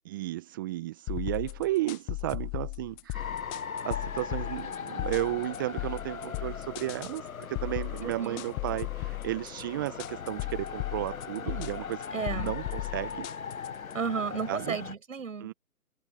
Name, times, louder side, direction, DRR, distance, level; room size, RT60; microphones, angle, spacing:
voice 1, 0.1-3.3 3.8-12.0 12.3-13.3 14.5-14.8 15.4-15.5, right 16 dB, 15° right, 1.0 m, -33 dB
sound 1, 1.1-13.9, left 27 dB, 10° left, 1.0 m, -36 dB
sound 2, 3.1-14.9, left 6 dB, 60° left, 1.4 m, -39 dB
voice 2, 8.0-8.5 12.1-12.5 13.9-15.5, right 5 dB, 55° right, 7.7 m, -33 dB
figure-of-eight pair, 145°, 47 cm